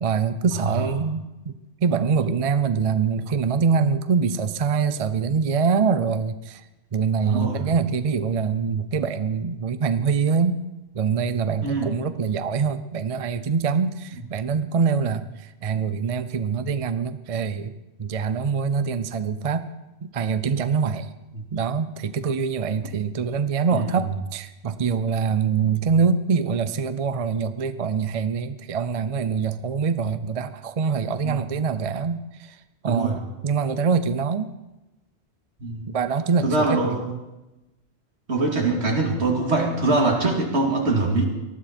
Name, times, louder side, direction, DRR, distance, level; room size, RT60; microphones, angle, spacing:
voice 1, 0.0-1.5 1.8-6.6 6.9-10.6 10.9-19.7 20.0-21.1 21.5-34.5 35.9-37.0, right 5 dB, 40° right, 12 dB, 0.6 m, -24 dB
voice 2, 7.2-7.6 11.6-11.9 21.3-21.4 23.7-23.9 31.2-31.4 32.8-33.1 35.6-35.9 36.4-37.1 38.3-41.2, right 2 dB, 80° right, 0 dB, 2.6 m, -23 dB
19.0 x 13.0 x 4.4 m, 1.0 s
omnidirectional pair, 1.1 m